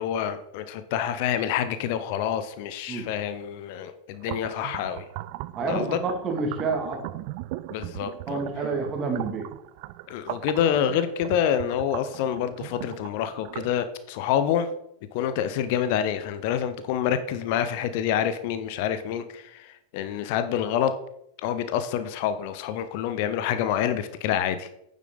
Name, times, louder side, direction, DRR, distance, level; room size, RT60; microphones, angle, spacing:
voice 1, 0.0-5.0 5.7-6.0 7.7-8.4 10.1-14.7 15.1-20.9 21.4-24.7, left 9 dB, 45° left, 11 dB, 0.8 m, -27 dB
sound 1, 4.2-13.7, right 17 dB, 45° right, 0.3 m, -38 dB
voice 2, 5.6-7.0 8.3-9.5, right 4 dB, 25° right, 2 dB, 2.3 m, -28 dB
9.2 x 7.3 x 3.9 m, 0.78 s
figure-of-eight pair, 90°, 0 cm